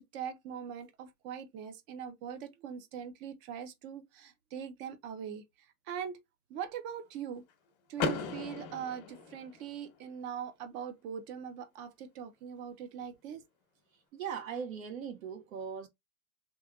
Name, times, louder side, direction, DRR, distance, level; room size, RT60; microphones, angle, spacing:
voice 1, 0.0-5.4 5.9-6.2 6.5-7.4 7.9-13.4, right 8 dB, 25° right, 0.5 m, -41 dB
Car / Door, 8.0-9.9, left 5 dB, 40° left, 1.1 m, -36 dB
voice 2, 14.1-15.9, right 7 dB, 65° right, 1.3 m, -39 dB
3.4 x 2.9 x 2.4 m
hypercardioid pair, 135°, 44 cm